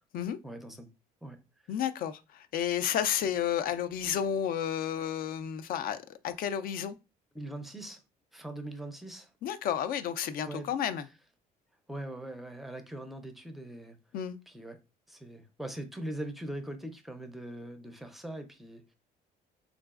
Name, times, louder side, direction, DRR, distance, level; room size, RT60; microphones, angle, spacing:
voice 1, 0.4-0.9 1.2-1.4 7.3-8.0 8.3-9.3 10.4-10.7 11.9-14.0 14.5-14.8 15.1-18.8, right 1 dB, ahead, 0.5 m, -41 dB
voice 2, 1.7-7.0 9.4-11.1 14.1-14.4, left 9 dB, 60° left, 0.4 m, -31 dB
3.7 x 2.4 x 2.3 m
cardioid pair, 110°, 17 cm